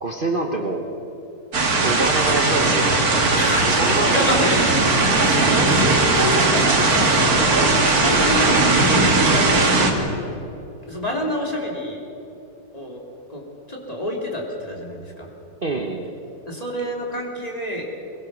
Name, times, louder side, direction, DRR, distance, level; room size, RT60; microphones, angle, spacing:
voice 1, 0.0-0.8 1.8-3.0 3.6-4.5 7.5-7.7 8.4-8.6 15.6-16.1, right 2 dB, 35° right, 1 dB, 1.3 m, -26 dB
sound 1, 1.5-9.9, right 3 dB, 65° right, 2.5 m, -18 dB
voice 2, 4.0-9.0 9.3-10.1 10.9-12.0 12.7-13.0 13.3-15.3 16.4-17.9, equal, 20° left, -1 dB, 3.3 m, -28 dB
22.0 x 21.5 x 6.3 m, 2.8 s
omnidirectional pair, 1.7 m